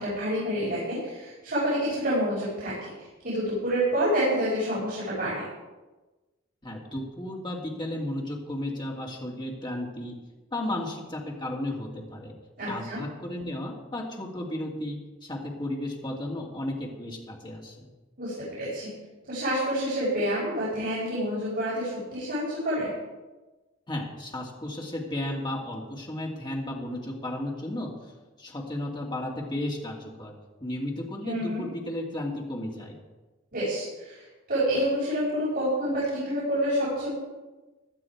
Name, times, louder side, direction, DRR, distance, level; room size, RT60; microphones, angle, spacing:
voice 1, 0.0-2.9 3.2-5.5 12.6-13.0 18.2-18.9 19.2-22.9 31.2-31.6 33.5-37.2, equal, 50° right, -9 dB, 5.9 m, -28 dB
voice 2, 6.6-10.2 10.5-12.3 12.7-17.9 23.9-27.9 28.4-30.4 30.6-33.0, left 1 dB, 25° left, -1 dB, 2.4 m, -34 dB
16.5 x 11.5 x 4.7 m, 1.2 s
head